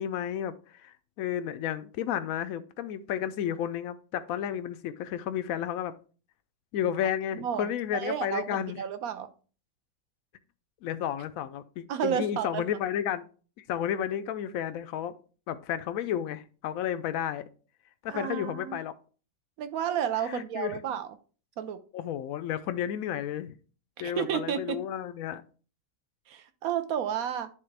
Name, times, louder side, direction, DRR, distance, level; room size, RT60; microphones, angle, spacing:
voice 1, 0.0-5.9 6.7-8.8 10.8-13.3 13.6-15.1 15.5-17.4 18.0-18.9 20.2-20.8 21.9-23.6 24.0-25.4, left 10 dB, 75° left, 0.8 m, -32 dB
voice 2, 7.3-9.3 11.9-12.6 18.1-18.8 19.6-21.2 21.6-21.8 24.0-24.8 26.3-27.5, right 9 dB, 65° right, 1.0 m, -32 dB
10.5 x 3.7 x 3.3 m
omnidirectional pair, 1.9 m